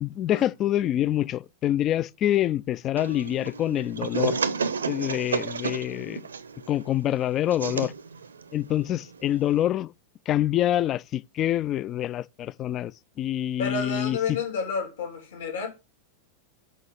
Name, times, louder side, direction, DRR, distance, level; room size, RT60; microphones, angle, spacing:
voice 1, 0.0-4.4 4.9-6.2 6.7-7.9 8.5-9.9 10.3-12.9 13.2-14.4, left 12 dB, 30° left, 0.4 m, -26 dB
sound 1, 3.0-9.6, right 5 dB, 70° right, 0.6 m, -32 dB
voice 2, 13.6-15.7, left 5 dB, 60° left, 3.5 m, -30 dB
6.3 x 5.5 x 7.0 m
figure-of-eight pair, 90°, 0 cm